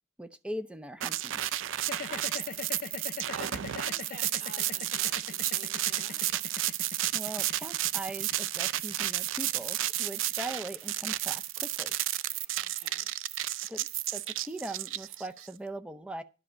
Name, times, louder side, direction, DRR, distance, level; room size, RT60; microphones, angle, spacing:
voice 1, 0.2-1.4 7.1-12.0 12.4-12.5 13.7-16.2, right 1 dB, 5° right, 0.5 m, -40 dB
sound 1, 1.0-15.5, right 13 dB, 80° right, 0.4 m, -32 dB
sound 2, 1.8-12.0, left 5 dB, 50° left, 0.5 m, -42 dB
voice 2, 2.1-2.6 2.9-6.4 10.4-10.6 12.6-13.1, right 3 dB, 40° right, 2.2 m, -49 dB
11.0 x 4.8 x 6.2 m
head